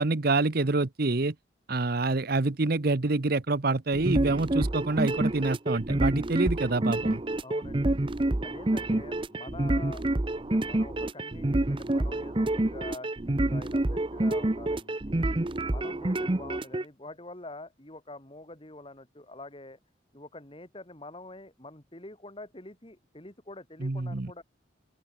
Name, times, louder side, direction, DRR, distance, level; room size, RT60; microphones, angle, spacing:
voice 1, 0.0-1.3 1.7-7.2 23.8-24.3, right 3 dB, 55° right, 0.9 m, -27 dB
sound 1, 3.9-16.8, right 1 dB, 25° right, 0.7 m, -28 dB
voice 2, 7.4-8.0 8.4-10.0 10.4-15.3 15.7-19.8 20.1-24.4, left 2 dB, 30° left, 3.0 m, -45 dB
open air
head